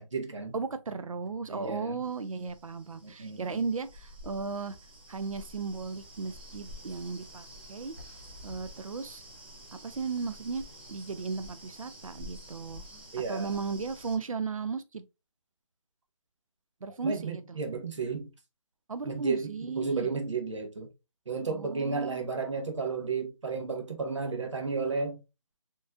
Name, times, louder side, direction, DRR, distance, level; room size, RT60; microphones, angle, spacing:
voice 1, 0.0-0.5 1.5-2.0 3.0-3.6 13.1-13.5 17.0-18.3 19.0-20.9 21.3-25.2, right 4 dB, 60° right, 1.2 m, -33 dB
voice 2, 0.5-4.8 5.1-7.9 8.4-9.2 9.7-10.6 10.9-12.8 13.3-15.1 16.8-17.6 18.9-20.1 21.5-22.2, right 4 dB, 80° right, 0.6 m, -35 dB
sound 1, 2.0-14.2, equal, 20° right, 0.7 m, -49 dB
4.5 x 3.1 x 2.4 m
hypercardioid pair, 175°, 17 cm